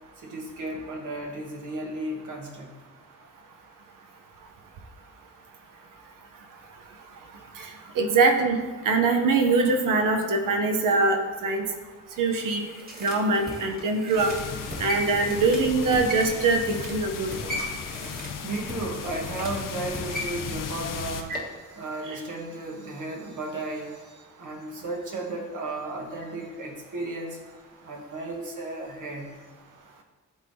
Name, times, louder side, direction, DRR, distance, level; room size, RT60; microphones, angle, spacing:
voice 1, 0.2-2.7 18.4-27.4 27.8-29.3, right 2 dB, 70° right, -1 dB, 1.4 m, -34 dB
voice 2, 8.0-8.6 8.8-11.6 12.2-12.7 13.0-14.3 14.8-17.3 21.3-21.4, right 3 dB, 90° right, 4 dB, 0.8 m, -23 dB
sound 1, 12.1-21.5 21.9-22.0, equal, 30° right, 1.5 m, -38 dB
sound 2, 14.2-21.2, left 7 dB, 85° left, 0.6 m, -36 dB
11.0 x 3.8 x 2.7 m, 1.4 s
cardioid pair, 75°, 32 cm